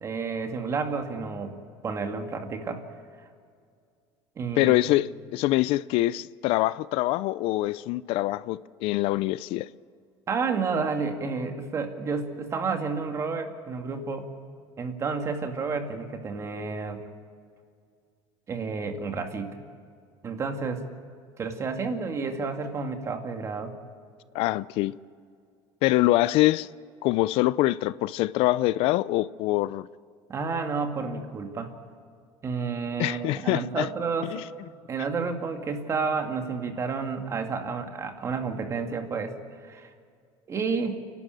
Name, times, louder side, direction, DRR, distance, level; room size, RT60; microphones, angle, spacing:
voice 1, 0.0-1.6 1.8-2.8 4.4-5.0 10.3-14.3 14.8-17.1 18.5-19.6 20.2-20.8 21.4-23.7 30.3-31.7 32.4-34.4 34.9-39.4 39.6-39.9 40.5-41.0, right 4 dB, 30° right, 2.1 m, -30 dB
voice 2, 4.6-9.7 24.3-24.9 25.8-26.7 27.0-29.9 33.0-33.9 34.3-34.4, left 17 dB, 65° left, 0.5 m, -24 dB
29.5 x 12.0 x 9.1 m
cardioid pair, 150°, 11 cm